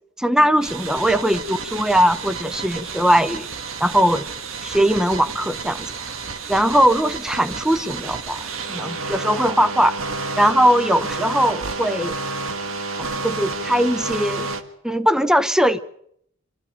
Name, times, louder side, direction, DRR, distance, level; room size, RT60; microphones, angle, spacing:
voice 1, 0.2-3.5 3.8-4.3 4.6-5.9 6.5-9.9 10.4-12.1 13.0-14.5 14.8-15.8, equal, 5° right, 14 dB, 0.8 m, -20 dB
sound 1, 0.6-14.6, right 4 dB, 90° right, 1.8 m, -30 dB
26.0 x 14.0 x 9.2 m, 0.70 s
head